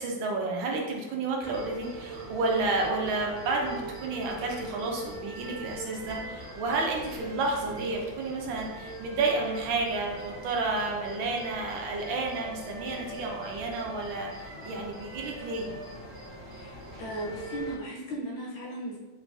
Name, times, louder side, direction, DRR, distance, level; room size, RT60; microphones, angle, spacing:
voice 1, 0.0-15.7, right 3 dB, 75° right, 0 dB, 1.5 m, -31 dB
sound 1, 1.4-17.7, right 2 dB, 35° left, 0.4 m, -41 dB
voice 2, 16.4-19.0, right 1 dB, 75° left, -3 dB, 1.7 m, -37 dB
4.4 x 4.0 x 2.6 m, 1.2 s
omnidirectional pair, 2.2 m